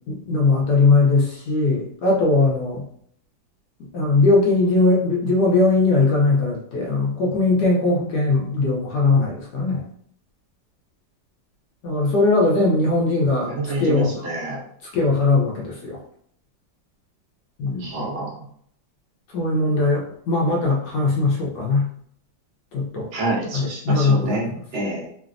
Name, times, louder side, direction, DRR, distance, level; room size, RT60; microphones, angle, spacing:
voice 1, 0.1-2.8 3.9-9.8 11.8-14.3 14.9-16.0 17.6-18.1 19.3-21.9 22.7-23.1 23.5-24.5, left 3 dB, 70° left, -3 dB, 1.1 m, -20 dB
voice 2, 13.2-14.6 17.8-18.3 23.1-25.1, right 2 dB, 60° right, -4 dB, 0.6 m, -27 dB
3.3 x 2.0 x 2.4 m, 0.64 s
omnidirectional pair, 2.1 m